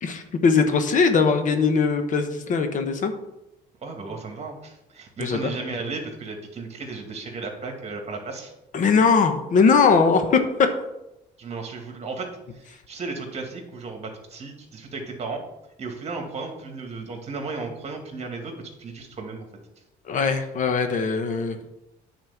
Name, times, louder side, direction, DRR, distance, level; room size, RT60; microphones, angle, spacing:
voice 1, 0.0-3.1 5.2-5.4 8.7-10.4 20.1-21.6, left 5 dB, 50° left, 7 dB, 1.0 m, -20 dB
voice 2, 3.8-8.5 11.4-15.4 15.8-19.5, right 3 dB, 40° right, 3 dB, 2.2 m, -35 dB
9.4 x 4.4 x 7.1 m, 0.92 s
cardioid pair, 110°, 17 cm